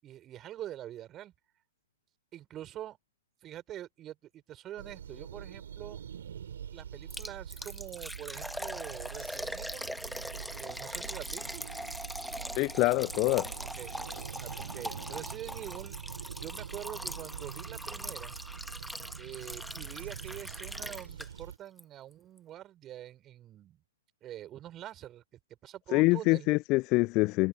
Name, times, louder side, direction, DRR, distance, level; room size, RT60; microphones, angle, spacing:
voice 1, 0.0-1.3 2.3-3.0 3.4-6.0 6.7-9.9 10.6-11.6 13.8-13.9 14.4-16.0 16.4-18.4 19.2-23.8 24.2-25.2 25.6-26.5, right 12 dB, 20° right, 6.4 m, -45 dB
sound 1, 4.8-21.6, right 8 dB, 60° right, 3.0 m, -44 dB
Liquid, 7.1-21.5 21.8-21.9 22.4-22.5, equal, ahead, 1.4 m, -41 dB
voice 2, 12.5-13.6 25.9-27.5, left 23 dB, 30° left, 0.4 m, -25 dB
figure-of-eight pair, 115°, 0 cm